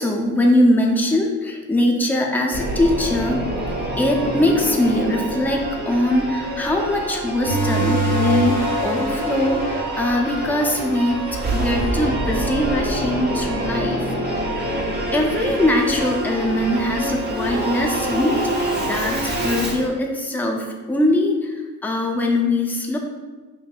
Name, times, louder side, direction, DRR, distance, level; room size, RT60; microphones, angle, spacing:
voice 1, 0.0-3.4 4.0-11.2 11.5-14.0 15.1-23.0, left 1 dB, 5° left, 0 dB, 0.5 m, -21 dB
Singing / Musical instrument, 2.5-19.9, right 1 dB, 35° right, 0.9 m, -26 dB
sound 1, 7.4-12.7, right 1 dB, 90° right, 1.3 m, -26 dB
5.3 x 2.6 x 2.4 m, 1.3 s
cardioid pair, 90°, 30 cm